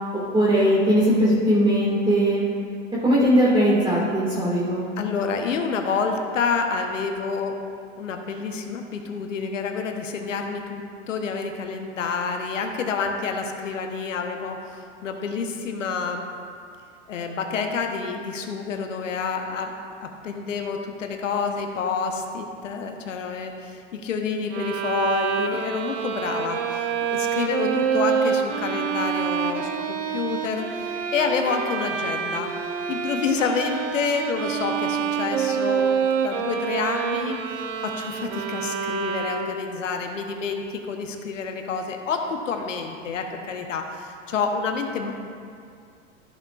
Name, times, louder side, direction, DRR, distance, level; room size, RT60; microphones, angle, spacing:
voice 1, 0.1-2.4 3.0-4.9, equal, 10° right, -8 dB, 1.8 m, -19 dB
voice 2, 5.0-7.6 8.0-16.2 17.1-19.7 20.0-32.5 32.9-45.1, left 5 dB, 80° left, 4 dB, 1.0 m, -28 dB
Bowed string instrument, 24.5-39.8, right 7 dB, 75° right, 0.7 m, -27 dB
13.5 x 7.0 x 2.4 m, 2.3 s
hypercardioid pair, 85°, 37 cm